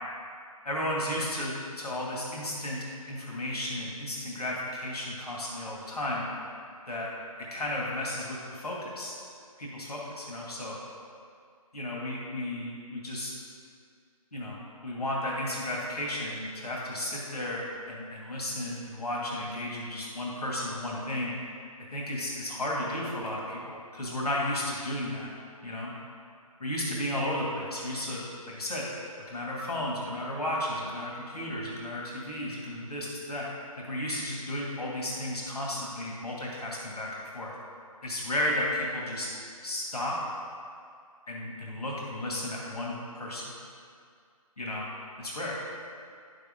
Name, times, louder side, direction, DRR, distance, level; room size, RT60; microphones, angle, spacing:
voice 1, 0.6-6.2 6.9-7.1 7.5-9.2 9.6-10.8 11.7-13.3 14.3-21.3 21.9-25.3 25.6-25.9 26.6-28.2 28.5-28.9 29.3-33.5 33.8-37.1 37.3-37.5 38.0-39.3 39.6-40.2 41.3-43.5 44.6-44.9 45.2-45.6, left 1 dB, 85° left, -4 dB, 2.6 m, -33 dB
11.0 x 6.9 x 3.9 m, 2.2 s
hypercardioid pair, 170°, 19 cm